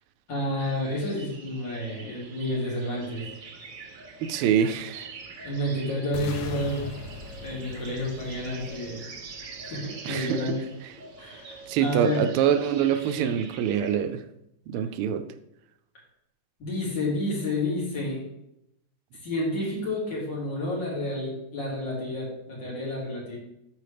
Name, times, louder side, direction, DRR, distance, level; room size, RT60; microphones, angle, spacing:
voice 1, 0.3-3.2 5.4-6.9 7.4-9.0 9.6-10.6 11.2-12.3 16.6-18.2 19.2-23.4, left 1 dB, 55° left, -5 dB, 3.1 m, -30 dB
sound 1, 0.6-14.0, right 4 dB, 55° right, 0.9 m, -44 dB
voice 2, 4.2-5.1 10.0-10.5 11.7-14.2 14.7-15.2, right 9 dB, 85° right, 10 dB, 1.5 m, -25 dB
sound 2, 6.1-10.2, left 5 dB, 70° left, 0.9 m, -40 dB
7.7 x 6.1 x 3.4 m, 0.81 s
omnidirectional pair, 2.4 m